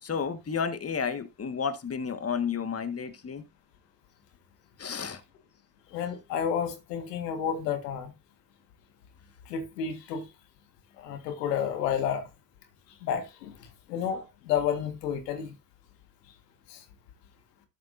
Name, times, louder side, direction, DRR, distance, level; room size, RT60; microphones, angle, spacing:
voice 1, 0.0-3.4 4.8-5.2, left 6 dB, 30° left, 1.6 m, -31 dB
voice 2, 5.9-8.1 9.5-10.3 11.0-12.3 13.0-15.6 16.7-16.8, left 8 dB, 85° left, 1.8 m, -31 dB
12.5 x 6.7 x 2.6 m
hypercardioid pair, 50°, 47 cm